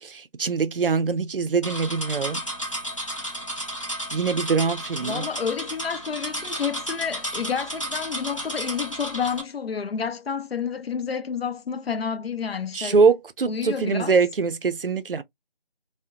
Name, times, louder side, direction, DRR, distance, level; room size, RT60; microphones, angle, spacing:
voice 1, 0.0-2.4 4.1-5.3 12.7-15.2, right 5 dB, 65° right, 0.4 m, -23 dB
sound 1, 1.6-9.4, equal, 35° left, 0.5 m, -33 dB
voice 2, 5.0-13.0 13.4-14.2, left 6 dB, 80° left, 0.5 m, -29 dB
2.7 x 2.1 x 2.3 m
figure-of-eight pair, 165°, 30 cm